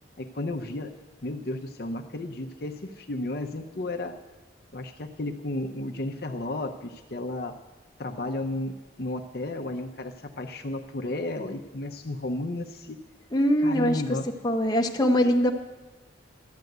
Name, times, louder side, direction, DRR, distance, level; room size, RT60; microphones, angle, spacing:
voice 1, 0.2-1.0 1.2-4.2 4.7-7.5 8.0-13.0 13.6-14.3, left 2 dB, 55° left, 5 dB, 0.7 m, -33 dB
voice 2, 13.3-14.0 14.4-15.5, equal, 20° left, 1 dB, 0.8 m, -22 dB
12.5 x 9.4 x 7.9 m, 1.2 s
head